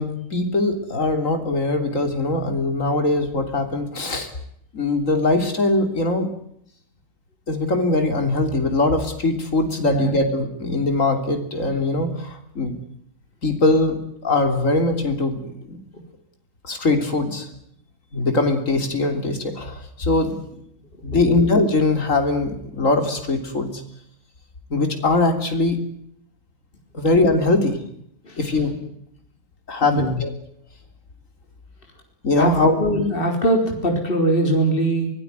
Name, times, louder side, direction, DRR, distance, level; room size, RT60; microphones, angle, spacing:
voice 1, 0.0-4.3 4.7-6.3 7.5-12.8 13.4-15.8 16.6-17.5 18.1-20.4 21.0-23.8 24.7-25.8 26.9-27.8 28.4-28.8 29.7-30.3 32.2-32.8, left 2 dB, 55° left, 6 dB, 3.7 m, -21 dB
voice 2, 9.8-10.2 28.2-28.4 29.9-30.2 32.3-32.5 32.8-35.1, right 1 dB, 35° left, 3 dB, 4.3 m, -21 dB
24.0 x 18.5 x 9.4 m, 0.71 s
omnidirectional pair, 1.6 m